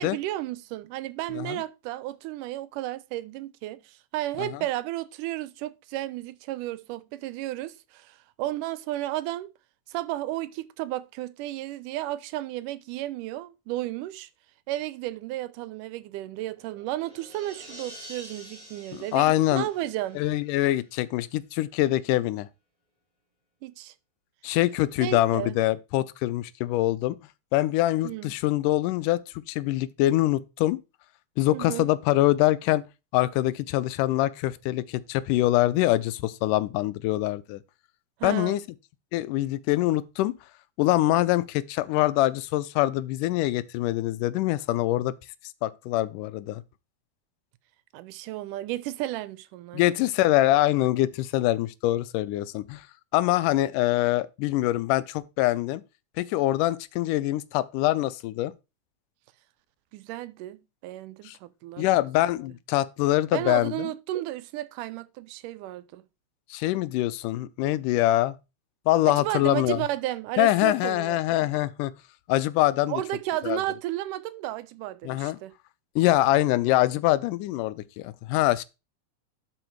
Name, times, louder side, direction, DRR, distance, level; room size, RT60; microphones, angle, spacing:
voice 1, 0.0-9.5 9.9-14.3 14.7-20.2 23.6-23.9 25.0-25.6 28.0-28.3 31.5-31.9 38.2-38.6 47.9-49.9 59.9-62.0 63.3-66.0 69.1-71.5 72.9-75.5, right 15 dB, 85° right, 2.3 m, -33 dB
sound 1, 16.3-20.8, right 1 dB, 10° right, 2.2 m, -48 dB
voice 2, 18.9-19.7 20.2-22.5 24.4-27.2 27.5-29.2 29.5-30.8 31.4-32.8 33.1-37.6 38.2-38.6 39.1-40.3 40.8-45.1 45.6-46.6 49.7-52.8 53.1-55.8 56.2-58.5 61.3-61.4 61.8-63.9 66.5-68.4 68.9-69.8 70.4-71.9 72.3-73.0 73.4-73.6 75.0-75.4 76.0-78.6, left 16 dB, 90° left, 2.2 m, -24 dB
12.0 x 5.0 x 4.6 m
omnidirectional pair, 3.6 m